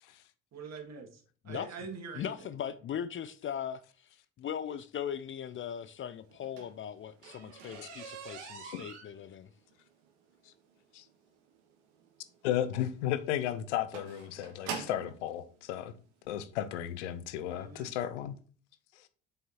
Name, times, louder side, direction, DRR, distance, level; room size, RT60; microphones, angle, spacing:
voice 1, 0.5-2.3 17.5-17.9, right 5 dB, 50° right, 2.1 m, -44 dB
voice 2, 2.1-4.1 4.4-9.5, left 9 dB, 35° left, 0.5 m, -39 dB
sound 1, 6.3-15.2 16.1-16.2 16.7-16.9 17.2-17.3 17.7-17.8, right 6 dB, 70° right, 1.6 m, -45 dB
voice 3, 12.4-15.9 16.3-18.4 18.9-19.1, left 11 dB, 75° left, 0.7 m, -34 dB
7.2 x 5.6 x 2.9 m
hypercardioid pair, 55°, 35 cm